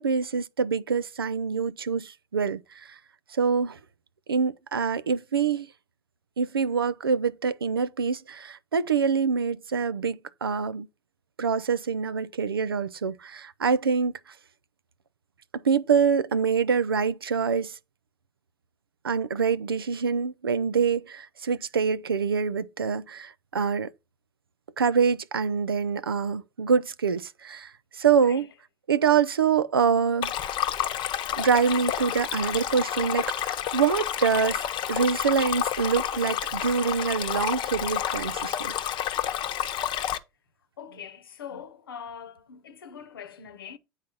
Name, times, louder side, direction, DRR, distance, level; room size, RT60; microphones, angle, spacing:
voice 1, 0.0-3.0 3.3-3.8 4.3-5.7 6.4-10.9 11.4-14.1 15.5-17.8 19.0-23.9 24.8-28.5 28.9-30.3 31.4-34.6 34.9-38.7, right 6 dB, 85° right, 0.4 m, -25 dB
Stream, 30.2-40.2, left 10 dB, 40° left, 0.9 m, -30 dB
voice 2, 40.8-43.8, left 8 dB, 75° left, 0.9 m, -42 dB
9.3 x 4.0 x 4.4 m
figure-of-eight pair, 75°, 12 cm